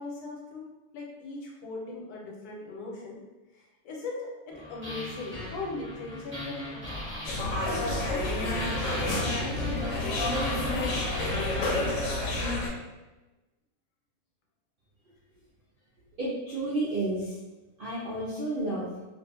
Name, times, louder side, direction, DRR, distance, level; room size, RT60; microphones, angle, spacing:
voice 1, 0.0-3.2 3.5-6.8 7.3-9.7, left 3 dB, 85° left, -1 dB, 1.2 m, -39 dB
sound 1, 4.5-12.2, left 1 dB, 10° right, 1.1 m, -38 dB
sound 2, 7.2-12.7, left 2 dB, 65° left, 0.9 m, -29 dB
voice 2, 16.2-17.4 17.8-18.9, right 2 dB, 65° right, -7 dB, 0.5 m, -31 dB
2.5 x 2.4 x 2.7 m, 1.1 s
omnidirectional pair, 1.6 m